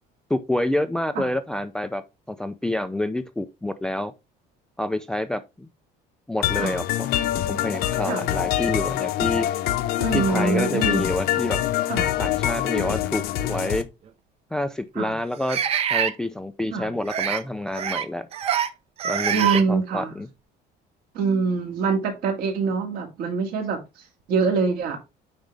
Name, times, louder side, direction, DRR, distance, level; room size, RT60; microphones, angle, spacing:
voice 1, 0.3-2.0 2.3-4.1 4.8-5.7 6.3-7.1 7.5-9.5 10.1-11.6 12.2-13.9 14.5-15.6 15.9-18.3 19.0-20.3, left 1 dB, 5° left, 0.3 m, -28 dB
sound 1, 6.4-13.8, left 13 dB, 60° left, 0.8 m, -25 dB
voice 2, 10.0-11.0 11.9-12.1 15.0-15.2 16.7-16.9 19.3-20.1 21.1-25.0, right 5 dB, 60° right, 2.3 m, -25 dB
sound 2, 10.7-10.8 11.5-11.7 13.3-13.4 15.5-16.1 17.1-17.4 17.7-18.1 18.3-18.7 19.0-19.6, right 9 dB, 35° right, 0.6 m, -24 dB
9.1 x 5.0 x 3.3 m
cardioid pair, 180°, 18 cm